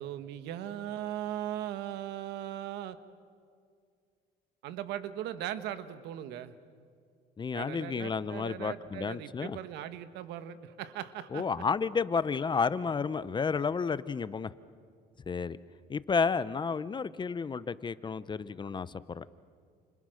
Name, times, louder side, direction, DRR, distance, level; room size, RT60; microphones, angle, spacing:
voice 1, 0.0-3.0 4.6-6.5 7.5-11.5, right 11 dB, 85° right, 12 dB, 1.4 m, -39 dB
voice 2, 7.4-9.6 11.3-14.5 15.3-15.6 15.9-19.3, left 5 dB, 25° left, 16 dB, 0.8 m, -31 dB
29.5 x 29.0 x 6.5 m, 2.2 s
cardioid pair, 110°, 17 cm